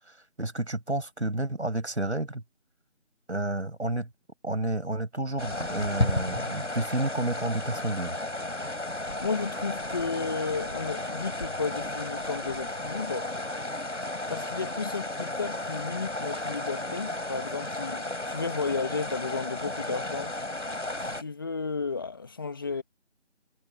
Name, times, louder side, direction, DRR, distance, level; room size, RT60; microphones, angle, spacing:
voice 1, 0.4-2.4 3.3-4.1 4.4-8.2, right 2 dB, 70° right, 6.7 m, -30 dB
sound 1, 5.4-21.2, left 1 dB, 80° left, 5.4 m, -33 dB
voice 2, 9.2-13.3 14.3-20.4 21.0-22.8, left 4 dB, 20° left, 2.3 m, -33 dB
figure-of-eight pair, 165°, 36 cm